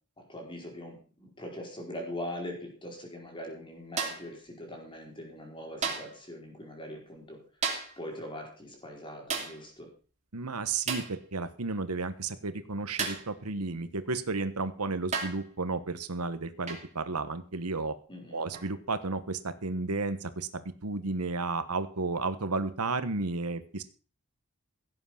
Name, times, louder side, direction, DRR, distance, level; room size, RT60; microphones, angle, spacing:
voice 1, 0.2-7.4 8.0-9.9 18.1-18.4, left 1 dB, 20° left, 1 dB, 4.5 m, -42 dB
sound 1, 4.0-4.4 5.8-6.2 7.6-8.0 9.3-9.6 10.9-11.2 13.0-13.3 14.4-14.5 15.1-15.5 16.7-16.9 18.5-18.7, right 5 dB, 30° right, 2.8 m, -33 dB
voice 2, 10.3-18.0 18.3-23.8, right 3 dB, 90° right, 11 dB, 1.3 m, -33 dB
17.0 x 8.0 x 5.8 m, 0.39 s
head